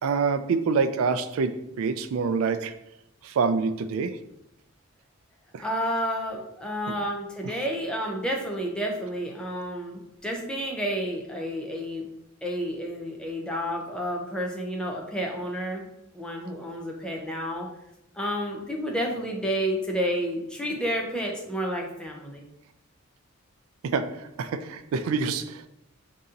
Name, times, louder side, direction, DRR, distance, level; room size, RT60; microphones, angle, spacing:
voice 1, 0.0-2.8 3.2-4.2 5.5-5.6 7.4-7.5 23.8-25.7, right 5 dB, 75° right, 11 dB, 0.3 m, -26 dB
voice 2, 5.6-12.1 12.4-15.9 16.1-17.7 18.1-22.5, equal, 5° left, 0 dB, 0.5 m, -30 dB
3.9 x 2.8 x 3.7 m, 0.84 s
head